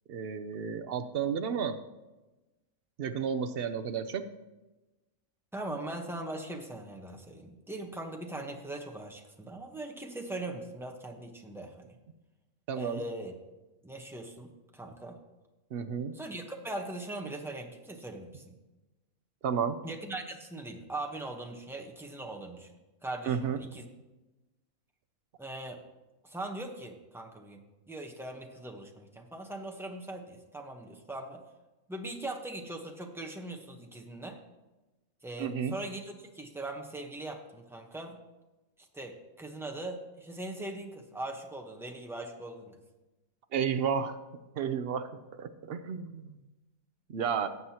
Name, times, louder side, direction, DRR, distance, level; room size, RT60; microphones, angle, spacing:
voice 1, 0.1-1.8 3.0-4.2 12.7-13.0 15.7-16.1 19.4-19.8 23.2-23.6 35.4-35.7 43.5-44.2 44.6-45.1 45.4-46.4 47.1-47.5, right 7 dB, 60° right, 9 dB, 0.6 m, -32 dB
voice 2, 5.5-11.9 12.8-13.3 13.8-15.2 16.1-18.6 19.8-22.7 23.0-23.8 25.4-25.8 26.2-31.4 31.9-34.4 35.2-38.2 38.8-42.8, right 2 dB, ahead, 2 dB, 0.7 m, -40 dB
18.0 x 7.7 x 2.9 m, 1.1 s
omnidirectional pair, 1.5 m